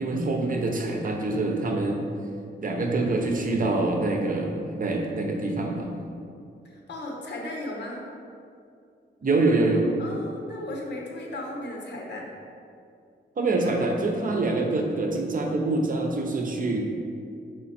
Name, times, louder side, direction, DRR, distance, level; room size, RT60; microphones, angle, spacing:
voice 1, 0.0-2.0 2.6-5.9 9.2-9.9 13.4-16.9, right 2 dB, 50° right, 2 dB, 0.9 m, -25 dB
voice 2, 6.6-8.1 10.0-12.3, left 1 dB, 70° left, -1 dB, 1.2 m, -36 dB
6.4 x 5.0 x 4.3 m, 2.4 s
wide cardioid pair, 130°, 19 cm